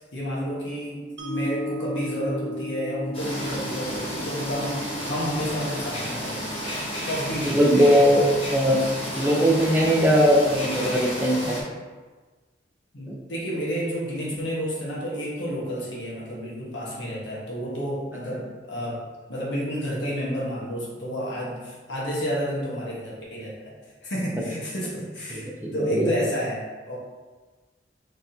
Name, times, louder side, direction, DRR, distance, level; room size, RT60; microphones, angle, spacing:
voice 1, 0.0-6.7 7.0-7.6 12.9-19.0 19.3-23.5 24.0-27.0, equal, 75° left, -5 dB, 1.2 m, -30 dB
Mallet percussion, 1.2-7.3, left 1 dB, 65° right, 0.6 m, -37 dB
sound 1, 3.1-11.6, equal, 30° left, 1.0 m, -32 dB
voice 2, 7.4-8.8 9.2-11.6 13.1-13.2 25.3-26.1, equal, 10° right, -3 dB, 0.6 m, -20 dB
4.0 x 3.5 x 2.8 m, 1.3 s
head